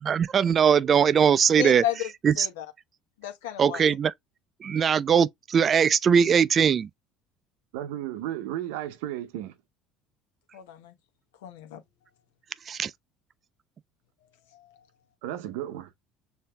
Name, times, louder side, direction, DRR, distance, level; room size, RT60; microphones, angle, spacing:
voice 1, 0.0-1.8 2.2-2.5 3.6-4.1 4.6-6.9 12.7-12.9, right 7 dB, 40° right, 0.3 m, -21 dB
voice 2, 1.6-2.1 2.4-2.7 3.2-3.9 10.5-10.9 11.4-11.8 14.5-14.7, left 11 dB, 85° left, 0.9 m, -33 dB
voice 3, 7.7-9.5 15.2-15.9, right 12 dB, 80° right, 0.6 m, -34 dB
6.6 x 2.6 x 2.2 m
hypercardioid pair, 80°, 0 cm